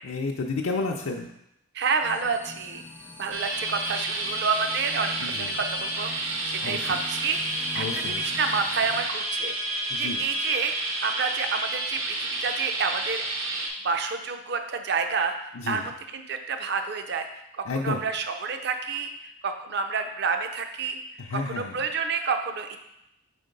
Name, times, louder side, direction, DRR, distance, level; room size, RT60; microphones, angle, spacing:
voice 1, 0.0-1.3 5.2-5.6 6.6-7.0 7.8-8.3 9.9-10.2 15.5-15.8 17.6-18.0 21.2-21.8, left 3 dB, 80° left, 0 dB, 0.5 m, -31 dB
voice 2, 1.7-2.8 3.2-13.2 13.8-21.0 21.4-22.8, right 5 dB, 50° right, 7 dB, 0.5 m, -29 dB
sound 1, 2.0-9.1, left 2 dB, 10° left, 0.3 m, -42 dB
sound 2, 3.3-13.7, right 2 dB, 75° right, 0.9 m, -30 dB
4.5 x 4.2 x 5.2 m, 0.84 s
head